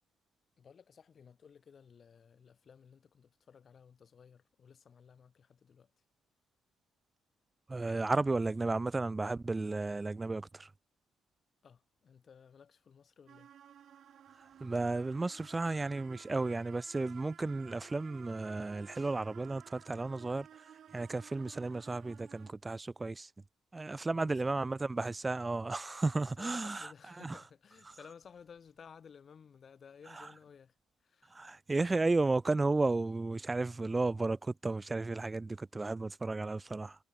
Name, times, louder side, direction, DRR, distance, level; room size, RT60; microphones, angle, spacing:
voice 1, 0.6-5.9 11.6-13.5 24.0-24.7 26.4-30.7 31.0-31.4, left 7 dB, 50° left, 2.1 m, -57 dB
voice 2, 7.7-10.7 14.6-20.5 20.9-23.3 23.7-26.9 27.2-27.4 30.1-30.3 31.3-37.0, right 3 dB, 25° right, 0.6 m, -33 dB
sound 1, 13.3-22.5, right 9 dB, 60° right, 2.1 m, -56 dB
hypercardioid pair, 55°, 0 cm